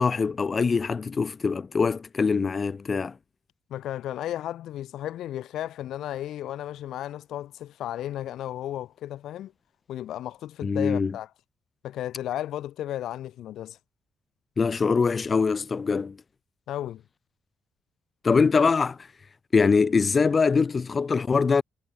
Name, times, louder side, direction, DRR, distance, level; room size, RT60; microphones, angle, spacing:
voice 1, 0.0-3.2 10.6-11.1 14.6-16.2 18.2-19.1 19.5-21.6, left 5 dB, 35° left, 2.1 m, -23 dB
voice 2, 3.7-9.5 9.9-11.3 11.8-13.8 16.7-17.0, left 12 dB, 80° left, 2.3 m, -34 dB
cardioid pair, 90°, 0 cm